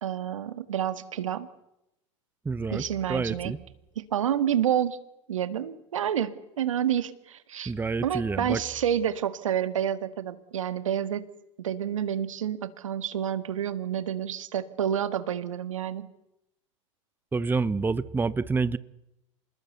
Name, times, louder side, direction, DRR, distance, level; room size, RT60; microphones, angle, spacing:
voice 1, 0.0-1.5 2.7-3.5 4.0-5.0 5.3-7.7 8.0-11.3 11.6-16.1, right 9 dB, 85° right, 1.7 m, -29 dB
voice 2, 2.4-3.6 7.7-8.6 17.3-18.8, right 4 dB, 10° right, 0.9 m, -28 dB
27.0 x 20.0 x 8.0 m
hypercardioid pair, 95°, 16 cm